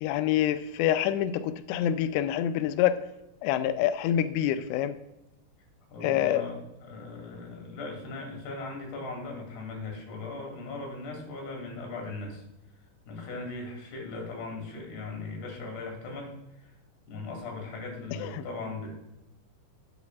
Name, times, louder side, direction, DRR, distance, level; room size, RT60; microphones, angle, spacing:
voice 1, 0.0-3.0 3.4-4.9 6.0-6.4 18.2-18.3, left 11 dB, 90° left, 11 dB, 2.8 m, -26 dB
voice 2, 5.9-12.4 13.1-16.7 17.1-19.0, left 3 dB, 70° left, 1 dB, 4.2 m, -38 dB
11.5 x 9.0 x 2.4 m, 0.92 s
omnidirectional pair, 4.9 m